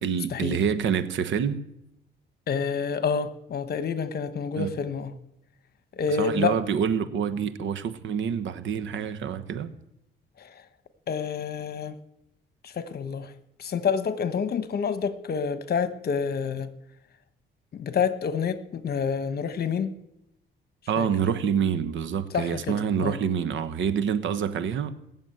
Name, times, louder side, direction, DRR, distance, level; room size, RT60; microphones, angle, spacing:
voice 1, 0.0-1.6 4.6-4.7 6.2-9.7 20.9-24.9, right 7 dB, 75° right, 1.2 m, -27 dB
voice 2, 2.5-5.1 5.9-6.5 10.4-10.6 11.1-12.0 12.6-13.3 13.6-16.7 17.7-19.9 21.0-21.1 22.3-23.1, left 6 dB, 50° left, 1.2 m, -28 dB
19.0 x 7.2 x 9.1 m
cardioid pair, 90°, 20 cm